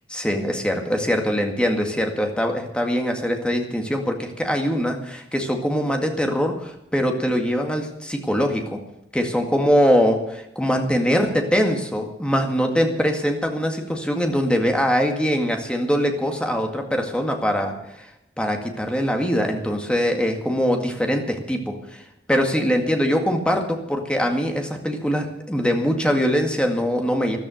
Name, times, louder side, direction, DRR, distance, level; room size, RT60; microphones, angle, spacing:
voice 1, 0.1-8.8 9.1-18.1 18.4-22.0 22.3-27.4, equal, 5° left, 3 dB, 2.0 m, -22 dB
14.0 x 12.5 x 6.4 m, 0.86 s
head